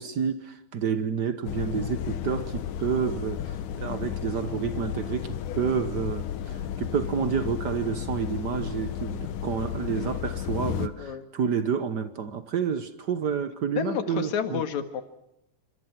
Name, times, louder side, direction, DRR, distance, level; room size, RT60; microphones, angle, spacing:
voice 1, 0.0-14.6, right 7 dB, 80° right, 10 dB, 0.9 m, -29 dB
sound 1, 1.5-10.9, left 9 dB, 85° left, 2.7 m, -33 dB
voice 2, 13.8-15.0, left 7 dB, 70° left, 8 dB, 3.0 m, -30 dB
28.5 x 26.0 x 6.0 m, 0.82 s
omnidirectional pair, 3.6 m